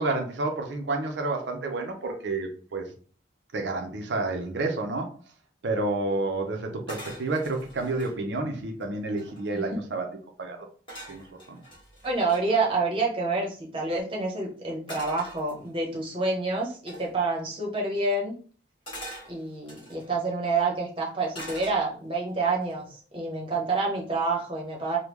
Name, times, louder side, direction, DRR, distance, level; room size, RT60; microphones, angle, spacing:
voice 1, 0.0-2.9 3.5-5.1 5.6-10.1 10.4-10.7 11.1-11.6, right 2 dB, 70° right, 3 dB, 0.6 m, -30 dB
sound 1, 6.9-8.2 8.8-8.9 9.0-9.7 10.9-12.4 14.9-16.0 16.9-17.1 18.9-20.1 21.3-22.2 22.6-23.0, equal, 25° left, 1.5 m, -43 dB
voice 2, 12.0-18.3 19.3-25.0, right 3 dB, 30° right, -2 dB, 0.8 m, -28 dB
3.5 x 2.2 x 3.0 m, 0.42 s
head